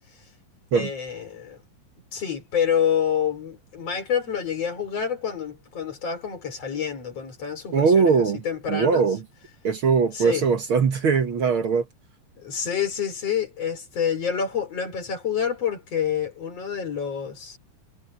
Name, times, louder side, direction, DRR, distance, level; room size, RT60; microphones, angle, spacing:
voice 1, 0.7-1.6 2.1-8.1 8.4-9.0 10.1-10.4 12.4-17.6, left 8 dB, 45° left, 4.7 m, -27 dB
voice 2, 7.7-8.4 8.7-9.2 9.6-11.8, right 5 dB, 65° right, 1.3 m, -20 dB
omnidirectional pair, 4.1 m